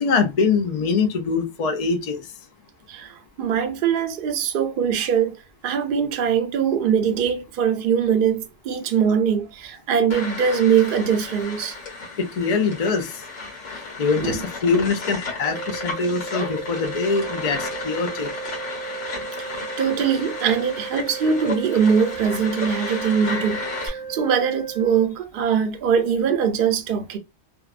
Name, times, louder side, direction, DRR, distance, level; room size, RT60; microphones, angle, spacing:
voice 1, 0.0-2.3 12.2-13.2 14.0-18.3, left 4 dB, 60° left, 0.4 m, -23 dB
voice 2, 2.9-5.4 5.6-11.8 14.2-14.4 19.4-19.5 19.8-27.2, right 7 dB, 60° right, 0.6 m, -22 dB
sound 1, 10.1-23.9, left 3 dB, 90° left, 1.3 m, -33 dB
sound 2, 15.4-25.1, right 6 dB, 85° right, 0.9 m, -35 dB
2.6 x 2.1 x 2.4 m
omnidirectional pair, 1.2 m